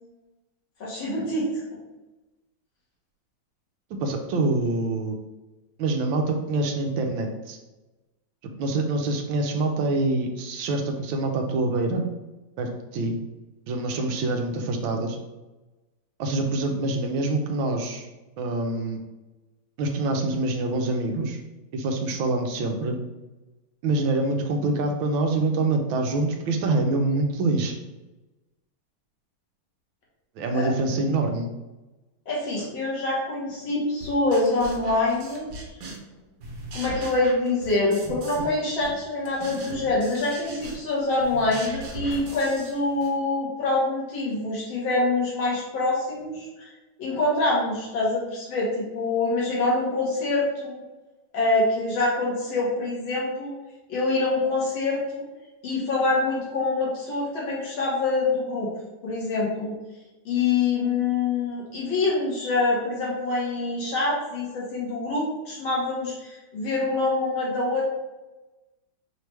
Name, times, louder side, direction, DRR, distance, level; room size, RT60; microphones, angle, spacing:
voice 1, 0.8-1.5 30.5-30.7 32.3-35.5 36.7-46.7 47.0-50.8 51.3-53.5 53.9-55.3 55.6-58.7 59.0-59.7 60.3-67.9, left 2 dB, 75° left, -5 dB, 2.1 m, -25 dB
voice 2, 4.0-5.1 5.8-7.6 8.6-12.0 12.6-13.2 13.7-15.2 16.2-18.1 18.4-19.0 19.8-21.4 21.7-23.0 23.8-27.8 30.4-31.5, right 2 dB, 80° right, 4 dB, 1.4 m, -25 dB
sound 1, 34.0-36.1 36.4-38.5 38.8-43.2, right 2 dB, 60° right, 1.4 m, -39 dB
4.8 x 3.1 x 3.3 m, 1.1 s
omnidirectional pair, 2.2 m